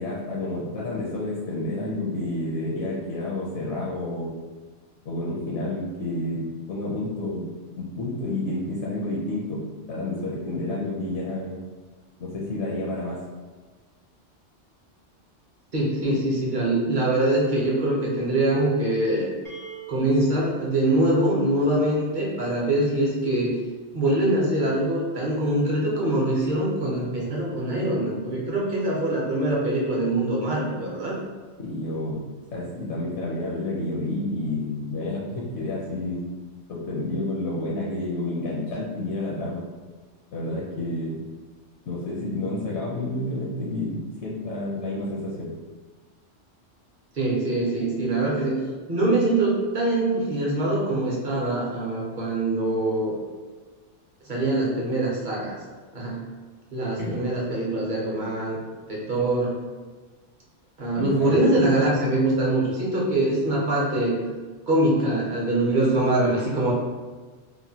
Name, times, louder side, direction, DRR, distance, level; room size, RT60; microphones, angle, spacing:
voice 1, 0.0-4.3 5.0-7.4 7.8-9.6 9.9-11.6 12.2-13.2 31.6-32.2 32.5-36.3 36.7-39.6 40.3-41.3 41.9-45.5 57.0-57.2 61.0-61.8, left 2 dB, 70° left, -5 dB, 0.8 m, -30 dB
voice 2, 15.7-19.3 19.9-23.6 23.9-31.2 47.1-48.6 48.9-53.2 54.3-55.5 55.9-56.2 56.7-58.6 58.9-59.6 60.8-64.2 64.7-66.7, right 1 dB, 50° right, -4 dB, 0.7 m, -23 dB
sound 1, 19.4-23.2, right 7 dB, 30° right, 0.3 m, -45 dB
3.0 x 2.1 x 2.6 m, 1.4 s
omnidirectional pair, 1.2 m